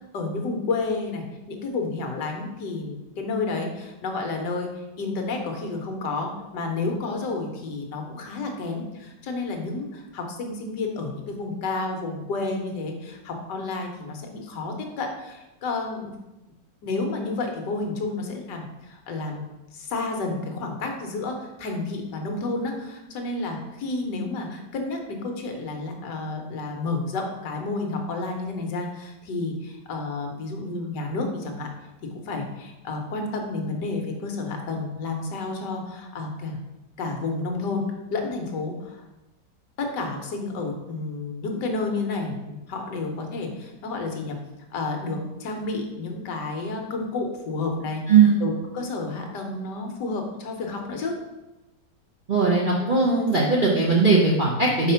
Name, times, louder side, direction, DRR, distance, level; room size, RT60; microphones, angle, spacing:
voice 1, 0.1-16.1 16.8-19.4 19.7-31.7 32.2-36.6 37.0-37.8 38.1-39.0 39.8-44.4 44.7-48.0 48.4-51.1, left 3 dB, 70° left, 2 dB, 1.5 m, -30 dB
voice 2, 52.3-54.9, right 4 dB, 50° right, -4 dB, 0.6 m, -19 dB
4.7 x 4.4 x 5.6 m, 1.0 s
omnidirectional pair, 2.0 m